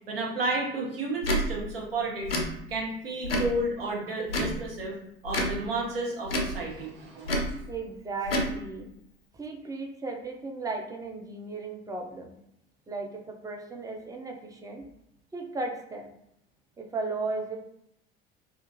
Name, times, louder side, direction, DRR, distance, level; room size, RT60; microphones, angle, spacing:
voice 1, 0.1-2.3 2.7-4.9 5.2-7.4, right 2 dB, 80° right, -2 dB, 0.7 m, -32 dB
Tick / Tick-tock, 1.2-1.4 2.2-2.5 3.2-3.5 4.3-4.6 5.3-5.5 6.2-6.5 7.2-7.5 8.2-8.5, equal, 85° left, 0.5 m, -28 dB
voice 2, 7.7-8.9 9.3-12.4 12.9-14.8 15.3-16.2 16.8-17.6, right 3 dB, 10° right, 2 dB, 0.4 m, -35 dB
2.4 x 2.3 x 2.9 m, 0.77 s
figure-of-eight pair, 55°, 29 cm